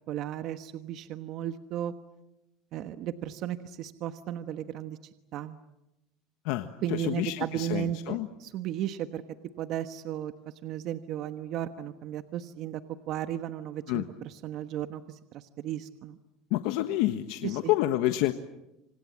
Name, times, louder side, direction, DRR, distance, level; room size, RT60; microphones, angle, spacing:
voice 1, 0.1-1.9 2.7-5.0 5.3-5.6 6.8-9.2 9.6-10.3 10.6-12.8 13.1-16.2 17.4-17.7, right 11 dB, 50° right, 9 dB, 1.2 m, -35 dB
voice 2, 6.4-8.3 13.9-14.0 16.5-18.3, left 15 dB, 70° left, 8 dB, 1.4 m, -28 dB
27.5 x 26.5 x 7.5 m, 0.92 s
supercardioid pair, 130°, 0 cm